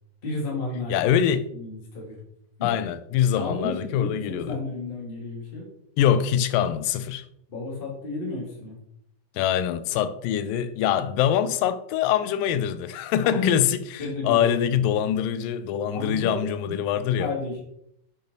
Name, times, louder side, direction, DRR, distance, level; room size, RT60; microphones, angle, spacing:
voice 1, 0.2-1.1 1.5-2.2 2.6-2.7 3.3-5.6 7.5-8.8 13.2-13.6 14.0-14.9 15.9-16.8 17.2-17.6, left 3 dB, 25° left, 1.2 m, -32 dB
voice 2, 0.9-1.5 2.6-4.6 6.0-7.3 9.4-13.8 14.2-17.3, left 9 dB, 90° left, 2.3 m, -24 dB
6.8 x 5.3 x 3.9 m
omnidirectional pair, 3.9 m